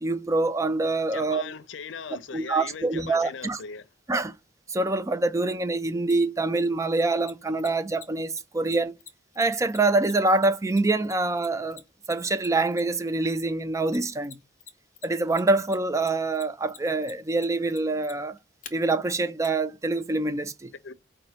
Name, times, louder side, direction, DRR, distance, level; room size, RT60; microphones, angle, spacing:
voice 1, 0.0-1.5 2.3-3.6 4.1-4.3 4.7-8.9 9.4-11.8 12.1-14.4 15.0-18.4 18.7-20.7, right 2 dB, 15° right, 0.4 m, -25 dB
voice 2, 1.1-3.9 20.8-20.9, left 5 dB, 90° left, 0.5 m, -39 dB
Mechanisms, 6.1-6.2 7.2-13.1 13.9-14.7 15.0-18.7 19.4-19.5, left 7 dB, 45° left, 0.9 m, -45 dB
5.2 x 2.2 x 4.1 m
head